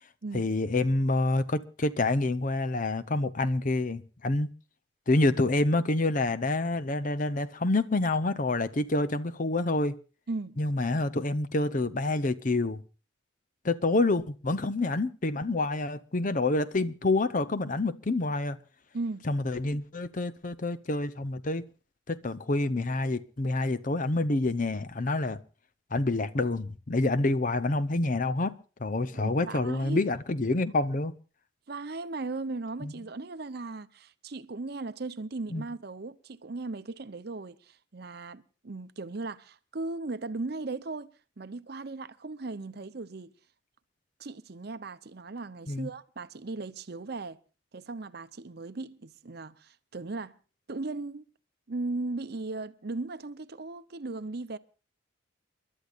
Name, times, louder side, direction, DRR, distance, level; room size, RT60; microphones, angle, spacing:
voice 1, 0.3-4.5 5.1-10.0 10.6-12.8 13.6-18.6 19.3-21.6 22.1-25.4 25.9-28.5 28.8-31.1 32.8-32.9 35.5-35.6 45.7-45.9, left 2 dB, 40° left, 0.7 m, -27 dB
voice 2, 10.3-10.6 18.9-19.3 29.1-30.0 31.7-43.3 44.2-47.4 47.7-50.4 50.7-51.3 51.7-54.6, right 3 dB, 55° right, 0.7 m, -37 dB
30.0 x 12.0 x 2.5 m
head